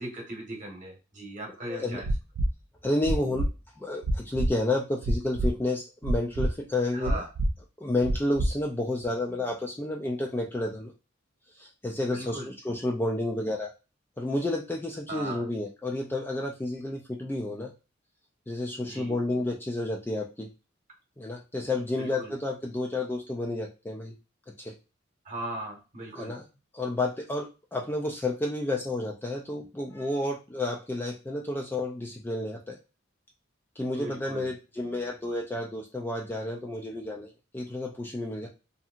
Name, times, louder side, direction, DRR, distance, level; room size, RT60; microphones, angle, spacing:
voice 1, 0.0-2.1 6.9-7.3 12.1-12.5 15.1-15.5 18.9-19.2 22.0-22.3 25.2-26.3 33.9-34.5, right 1 dB, 40° right, 0 dB, 1.0 m, -38 dB
voice 2, 1.7-2.0 2.8-3.4 3.8-7.2 7.8-10.9 11.5-13.7 14.2-17.7 18.5-20.5 21.2-24.1 24.6-24.7 26.2-26.4 26.7-32.8 33.8-38.5, left 2 dB, 10° left, 0 dB, 0.3 m, -31 dB
sound 1, 2.0-2.5 3.0-3.5 4.0-4.5 5.0-5.5 6.0-6.5 7.0-7.5 8.0-8.5 9.0-9.1, right 1 dB, 85° right, 0.4 m, -25 dB
2.7 x 2.6 x 2.4 m, 0.30 s
head